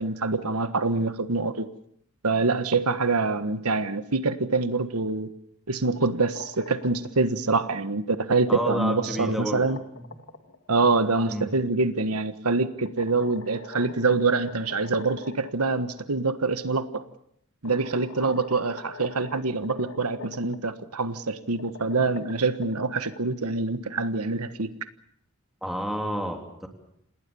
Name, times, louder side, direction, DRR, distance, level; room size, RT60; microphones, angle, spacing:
voice 1, 0.0-1.7 2.2-5.3 5.7-9.8 10.7-17.0 17.6-24.7, right 3 dB, 90° right, 11 dB, 1.4 m, -25 dB
sound 1, 6.1-7.2 8.4-11.3 12.9-15.7 16.0-16.1 17.1-17.2 17.7-20.6 21.4-23.1, left 4 dB, 60° left, 2.2 m, -44 dB
voice 2, 8.5-9.6 9.9-10.2 11.3-11.5 25.6-26.7, equal, ahead, 3 dB, 3.2 m, -30 dB
28.0 x 19.5 x 7.0 m, 0.71 s
head